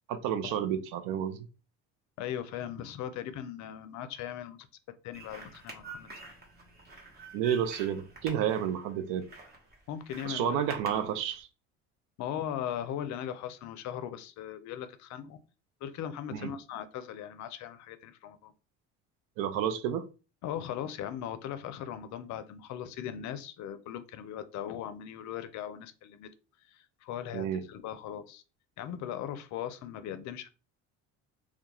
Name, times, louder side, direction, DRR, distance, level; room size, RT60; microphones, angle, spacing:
voice 1, 0.1-1.4 7.3-9.3 10.2-11.5 16.3-16.5 19.4-20.0 27.3-27.6, right 9 dB, 75° right, 0.5 m, -30 dB
voice 2, 2.2-4.6 5.0-6.1 9.9-11.0 12.2-15.4 15.8-18.5 20.4-26.3 26.6-28.4 28.8-30.5, left 10 dB, 55° left, 0.5 m, -39 dB
sound 1, 5.1-11.4, right 3 dB, 30° right, 1.0 m, -48 dB
2.2 x 2.2 x 2.9 m
supercardioid pair, 85°, 33 cm